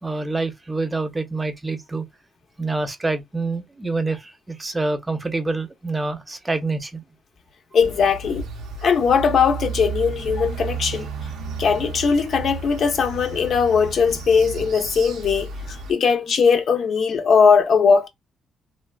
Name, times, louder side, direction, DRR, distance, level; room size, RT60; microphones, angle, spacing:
voice 1, 0.0-2.0 2.6-7.0, right 3 dB, 20° right, 0.6 m, -26 dB
voice 2, 7.7-8.5 8.8-11.1 11.6-18.1, left 6 dB, 60° left, 0.8 m, -19 dB
sound 1, 7.8-15.9, right 5 dB, 85° right, 0.6 m, -33 dB
3.3 x 2.2 x 2.3 m
cardioid pair, 90°, 0 cm